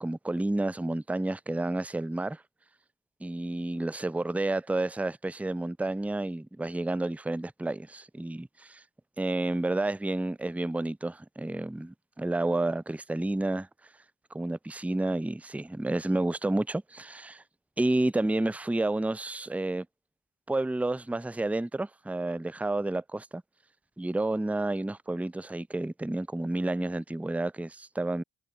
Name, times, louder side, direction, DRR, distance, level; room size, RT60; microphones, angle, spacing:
voice 1, 0.0-2.4 3.2-8.8 9.2-13.7 14.3-17.4 17.8-19.9 20.5-23.4 24.0-28.2, right 2 dB, 5° right, 0.7 m, -30 dB
cardioid pair, 50°, 43 cm